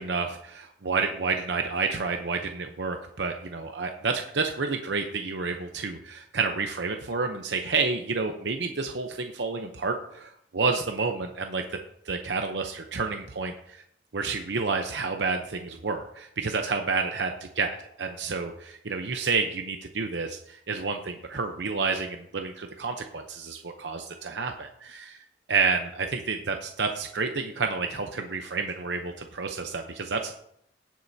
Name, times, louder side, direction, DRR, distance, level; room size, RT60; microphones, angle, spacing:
voice 1, 0.0-11.6 12.1-13.8 14.1-25.2 25.5-30.3, right 4 dB, 85° right, 5 dB, 0.8 m, -29 dB
17.5 x 7.6 x 2.8 m, 0.73 s
head